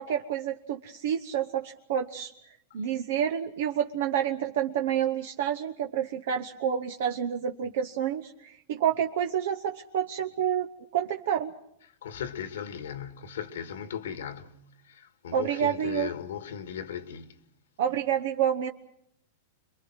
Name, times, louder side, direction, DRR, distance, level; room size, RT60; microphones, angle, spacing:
voice 1, 0.0-2.3 2.7-11.5 15.3-16.1 17.8-18.7, right 9 dB, 70° right, 1.0 m, -29 dB
voice 2, 12.0-17.4, left 8 dB, 85° left, 1.8 m, -37 dB
27.0 x 22.5 x 6.2 m
hypercardioid pair, 130°, 0 cm